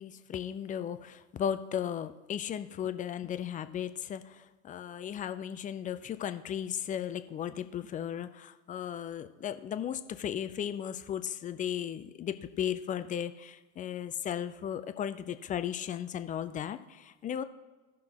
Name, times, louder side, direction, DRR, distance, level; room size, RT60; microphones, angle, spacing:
voice 1, 0.0-17.4, left 9 dB, 20° left, 11 dB, 0.4 m, -36 dB
16.5 x 6.1 x 2.9 m, 1.2 s
figure-of-eight pair, 80°, 39 cm